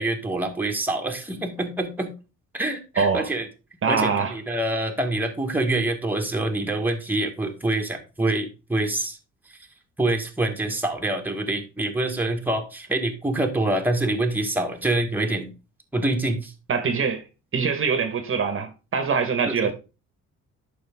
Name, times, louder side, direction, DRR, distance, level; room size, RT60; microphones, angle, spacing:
voice 1, 0.0-2.1 2.5-3.5 3.9-9.2 10.0-15.5 15.9-16.5 19.5-19.7, right 2 dB, 5° right, 1.4 m, -26 dB
voice 2, 3.0-3.3 3.8-4.3 16.7-17.2 17.5-19.7, right 5 dB, 45° right, 1.2 m, -23 dB
11.0 x 5.4 x 3.5 m
cardioid pair, 135°, 31 cm